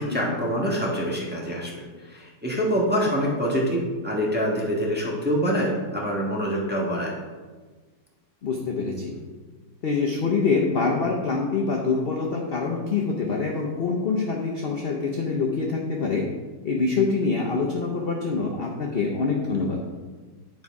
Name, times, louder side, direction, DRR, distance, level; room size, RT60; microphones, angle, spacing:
voice 1, 0.0-7.2, equal, 5° right, -4 dB, 1.3 m, -25 dB
voice 2, 8.4-9.2 9.8-16.2 16.6-19.8, left 4 dB, 50° left, -1 dB, 0.8 m, -25 dB
9.7 x 4.8 x 4.7 m, 1.4 s
omnidirectional pair, 1.9 m